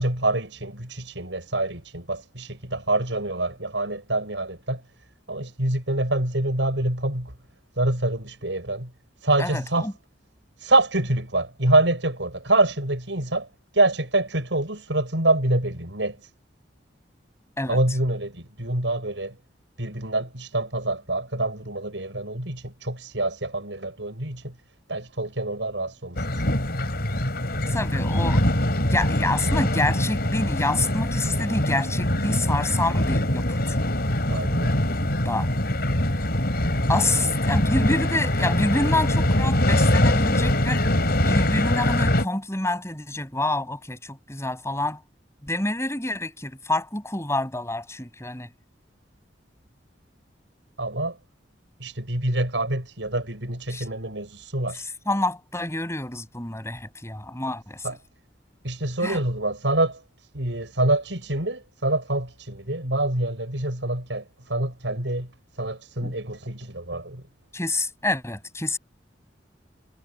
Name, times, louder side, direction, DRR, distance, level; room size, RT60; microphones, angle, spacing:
voice 1, 0.0-4.8 5.3-7.3 7.8-8.9 9.2-9.9 10.6-13.5 13.7-16.2 17.7-19.4 19.8-24.5 24.9-26.2 34.3-34.7 50.8-51.2 51.8-54.8 57.8-57.9 58.6-60.0 60.3-64.2 64.5-65.3 65.6-67.2, right 2 dB, 90° right, 6.9 m, -26 dB
voice 2, 9.4-9.9 17.6-17.8 27.7-28.4 28.8-33.8 35.2-35.5 36.9-40.9 41.2-45.0 45.4-48.5 53.7-53.9 54.7-58.0 59.0-59.2 66.0-66.1 67.5-68.8, left 2 dB, 15° left, 7.8 m, -27 dB
sound 1, 26.2-42.3, left 1 dB, 60° left, 5.2 m, -23 dB
head